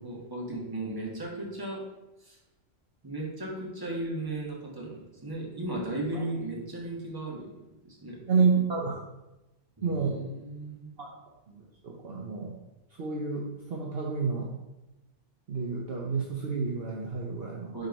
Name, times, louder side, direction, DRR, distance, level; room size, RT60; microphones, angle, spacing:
voice 1, 0.0-1.8 2.2-2.4 3.0-7.5 7.8-8.2 9.8-10.9 17.7-17.9, right 2 dB, 20° right, -3 dB, 1.4 m, -36 dB
voice 2, 8.3-9.0 9.8-10.2 11.0-11.1 11.5-12.5 13.0-14.5 15.5-17.7, right 5 dB, 55° right, -2 dB, 1.0 m, -29 dB
5.2 x 4.4 x 5.2 m, 0.97 s
omnidirectional pair, 1.3 m